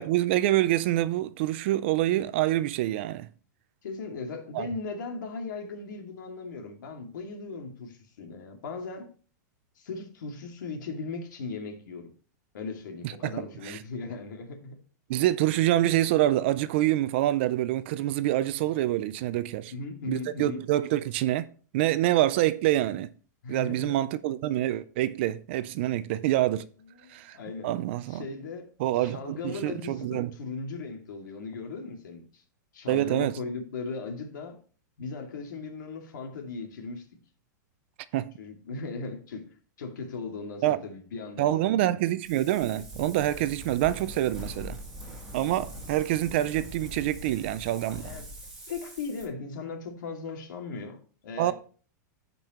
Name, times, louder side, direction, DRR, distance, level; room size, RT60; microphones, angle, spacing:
voice 1, 0.0-3.3 4.5-4.7 13.0-13.8 15.1-19.7 20.1-21.5 21.7-23.1 23.5-26.6 27.1-27.4 27.6-28.3 28.8-30.3 32.9-33.3 38.1-38.3 40.6-40.8 41.4-44.8 45.3-48.1 51.4-51.5, right 14 dB, 35° right, 0.4 m, -26 dB
voice 2, 3.8-9.1 9.8-12.1 12.5-14.8 19.7-20.6 23.4-23.9 25.8-26.1 26.9-27.7 28.1-28.7 29.0-32.4 32.7-34.6 35.0-37.1 38.4-39.5 39.8-42.0 45.7-45.8 47.9-48.2 48.7-51.5, left 4 dB, 80° left, 2.4 m, -38 dB
Wind, 42.2-49.3, equal, 5° right, 2.0 m, -42 dB
14.0 x 5.3 x 3.0 m
supercardioid pair, 175°, 10 cm